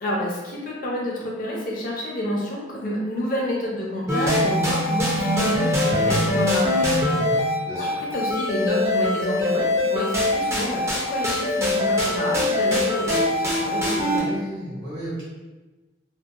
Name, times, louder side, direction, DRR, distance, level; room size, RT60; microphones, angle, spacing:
voice 1, 0.0-6.8 7.1-7.3 7.8-13.2 13.6-14.3, left 1 dB, 45° left, -3 dB, 0.5 m, -28 dB
sound 1, 4.1-14.2, left 1 dB, 15° right, 0.4 m, -23 dB
voice 2, 7.1-8.0 13.9-15.2, equal, 60° right, -8 dB, 1.2 m, -34 dB
2.6 x 2.1 x 2.4 m, 1.2 s
head